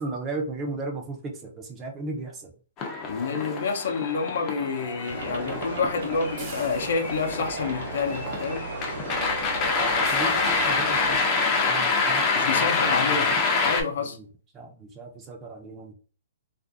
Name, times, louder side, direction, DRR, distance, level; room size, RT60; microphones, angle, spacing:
voice 1, 0.0-2.5 6.1-6.2 10.0-11.2 11.5-13.2 14.0-14.3 14.5-15.9, right 3 dB, 20° right, 0.6 m, -36 dB
sound 1, 2.8-13.8, left 4 dB, 25° left, 0.5 m, -26 dB
voice 2, 3.1-8.7 12.3-13.3 13.6-14.2, left 5 dB, 70° left, 0.6 m, -28 dB
sound 2, 5.1-11.2, right 3 dB, 65° right, 0.7 m, -36 dB
sound 3, 6.4-7.3 10.0-10.8 12.3-12.4 13.0-13.1 13.4-13.5 13.8-13.9, right 3 dB, 40° right, 0.9 m, -45 dB
2.5 x 2.4 x 2.4 m
hypercardioid pair, 145°, 0 cm